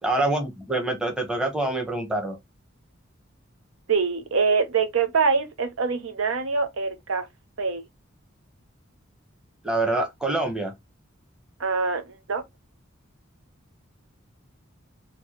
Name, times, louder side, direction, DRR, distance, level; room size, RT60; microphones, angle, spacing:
voice 1, 0.0-2.4 9.6-10.7, right 2 dB, 5° right, 0.9 m, -26 dB
voice 2, 3.9-7.3 7.6-7.8 11.6-12.4, right 5 dB, 75° right, 0.7 m, -24 dB
4.6 x 2.2 x 2.8 m
head